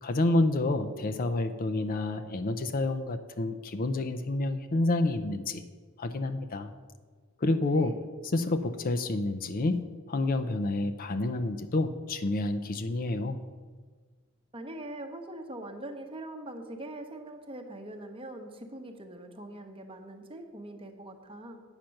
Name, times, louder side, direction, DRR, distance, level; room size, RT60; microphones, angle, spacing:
voice 1, 0.0-5.6 6.0-6.7 7.4-7.9 8.2-9.8 10.1-13.4, left 2 dB, 40° left, 8 dB, 0.5 m, -29 dB
voice 2, 14.5-21.6, right 1 dB, 25° right, 5 dB, 0.9 m, -42 dB
8.8 x 5.8 x 6.4 m, 1.5 s
head